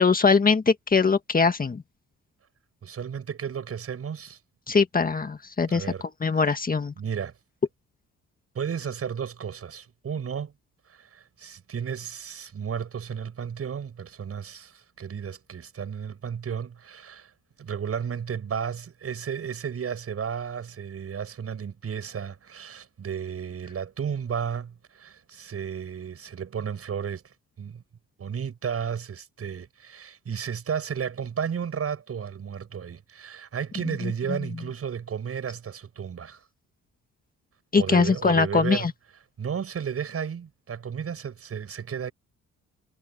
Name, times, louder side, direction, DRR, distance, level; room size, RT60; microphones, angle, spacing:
voice 1, 0.0-1.8 4.7-5.9 6.2-6.9 34.0-34.1 37.7-38.9, left 5 dB, 30° left, 1.8 m, -22 dB
voice 2, 2.8-4.4 5.7-6.6 7.0-7.3 8.5-10.5 10.9-17.3 17.6-27.8 28.2-36.4 37.8-38.9 39.4-42.1, right 7 dB, 50° right, 7.0 m, -33 dB
cardioid pair, 90°, 30 cm